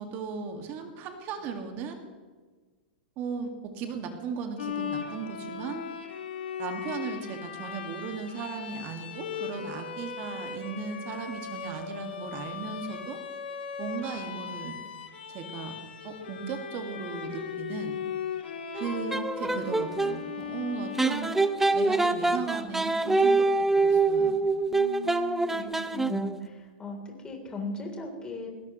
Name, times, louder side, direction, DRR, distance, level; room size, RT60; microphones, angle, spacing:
voice 1, 0.0-2.0 3.2-5.8 6.6-13.2 13.8-14.8 15.3-15.8 16.0-18.0 18.7-21.3 21.7-23.5 23.8-24.4, right 6 dB, 40° right, 4 dB, 1.9 m, -36 dB
Bowed string instrument, 4.6-22.0, left 7 dB, 85° left, 2.2 m, -38 dB
sound 1, 18.8-20.2 21.0-26.4, right 3 dB, 5° right, 0.6 m, -25 dB
voice 2, 24.7-28.5, left 2 dB, 15° left, 1 dB, 3.5 m, -38 dB
20.5 x 18.0 x 3.1 m, 1.4 s
hypercardioid pair, 135°, 5 cm